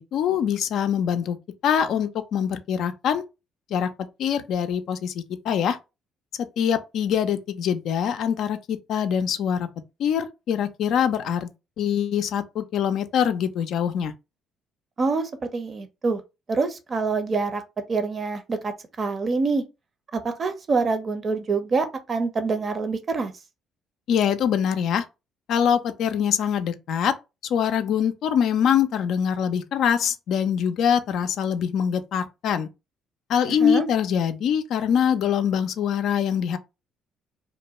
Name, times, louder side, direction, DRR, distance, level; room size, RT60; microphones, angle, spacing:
voice 1, 0.0-1.4 1.6-3.2 3.7-3.9 4.2-5.8 6.6-9.7 10.0-11.5 11.8-14.1 24.1-25.0 25.5-27.1 27.4-32.7 33.3-36.6, left 8 dB, 65° left, 0.3 m, -24 dB
voice 2, 15.0-16.2 16.5-17.6 17.9-19.6 20.1-23.3 33.5-33.9, right 4 dB, 45° right, 0.6 m, -26 dB
2.5 x 2.2 x 2.9 m
hypercardioid pair, 55°, 0 cm